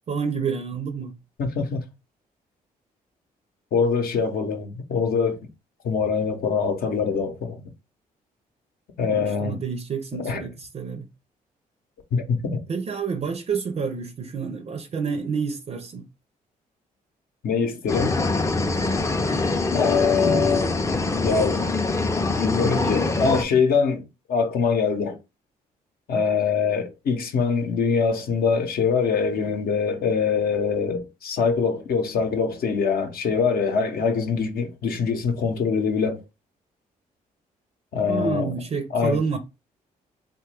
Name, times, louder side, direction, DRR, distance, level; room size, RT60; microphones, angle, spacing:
voice 1, 0.1-1.2 9.1-11.1 12.7-16.1 38.1-39.4, right 5 dB, 40° right, 0.5 m, -29 dB
voice 2, 1.4-1.8 3.7-5.4 5.8-7.6 9.0-9.6 10.2-10.4 12.1-12.6 17.4-18.2 19.7-20.8 21.2-21.6 22.4-25.2 26.1-36.2 37.9-38.5 38.9-39.2, left 5 dB, 70° left, 0.7 m, -23 dB
sound 1, 17.9-23.4, left 3 dB, 20° left, 0.4 m, -24 dB
3.0 x 2.2 x 3.3 m
supercardioid pair, 65°, 16 cm